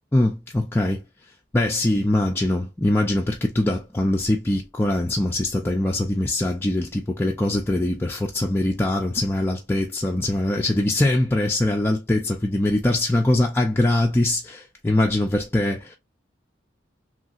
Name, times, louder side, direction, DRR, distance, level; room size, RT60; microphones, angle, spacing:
voice 1, 0.1-1.0 1.5-16.0, left 1 dB, 10° left, 0.3 m, -22 dB
3.1 x 2.6 x 2.4 m
head